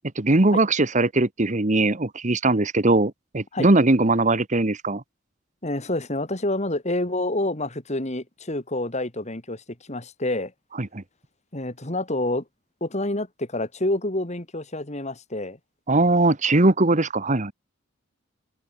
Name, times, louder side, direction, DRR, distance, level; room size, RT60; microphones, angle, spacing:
voice 1, 0.1-5.0 10.8-11.0 15.9-17.5, right 2 dB, 40° right, 1.3 m, -20 dB
voice 2, 5.6-10.5 11.5-12.4 12.8-15.6, left 1 dB, 35° left, 2.9 m, -28 dB
open air
head